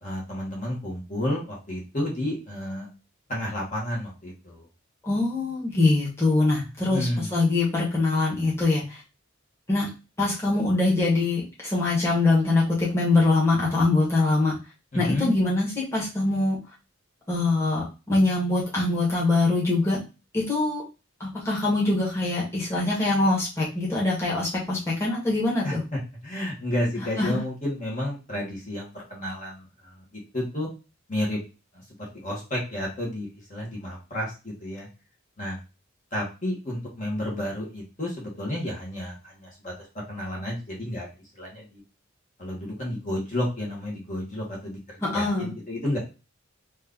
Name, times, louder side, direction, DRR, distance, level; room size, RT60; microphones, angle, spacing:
voice 1, 0.0-2.9 3.3-4.6 6.9-7.3 14.9-15.3 25.6-25.7 26.2-29.9 30.3-30.7 31.1-31.4 32.2-34.9 35.4-35.6 36.1-41.1 41.4-41.8 42.4-44.8 45.1-46.0, left 1 dB, 40° left, -4 dB, 1.3 m, -31 dB
voice 2, 5.0-9.0 9.7-9.9 10.2-14.5 14.9-16.6 17.3-20.0 20.3-20.8 21.2-25.8 27.2-27.4 45.0-45.5, left 2 dB, 15° left, -6 dB, 1.3 m, -23 dB
3.1 x 2.5 x 3.6 m, 0.29 s
head